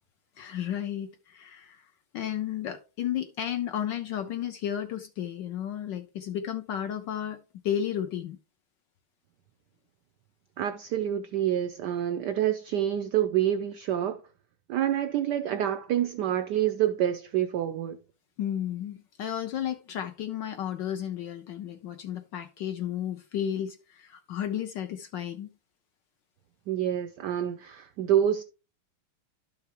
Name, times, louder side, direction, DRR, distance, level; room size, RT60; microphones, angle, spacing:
voice 1, 0.4-8.4 18.4-25.5, left 10 dB, 70° left, 1.1 m, -33 dB
voice 2, 10.6-14.2 14.7-18.0 26.7-28.4, right 11 dB, 80° right, 0.9 m, -27 dB
11.5 x 5.7 x 2.9 m
omnidirectional pair, 2.4 m